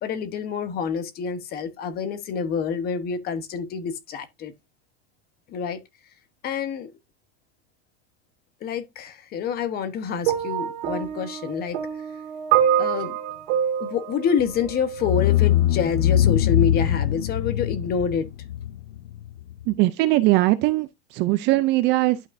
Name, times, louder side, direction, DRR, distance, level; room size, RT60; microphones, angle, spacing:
voice 1, 0.0-4.5 5.5-5.8 6.4-6.9 8.6-11.8 12.8-13.1 13.8-18.3, left 6 dB, 25° left, 1.1 m, -27 dB
sound 1, 10.2-15.4 16.3-16.4, right 9 dB, 50° right, 1.9 m, -26 dB
sound 2, 14.4-14.6 15.0-19.6, left 12 dB, 75° left, 0.7 m, -22 dB
voice 2, 19.6-22.3, right 18 dB, 30° right, 0.5 m, -21 dB
11.0 x 5.7 x 2.6 m
supercardioid pair, 160°, 34 cm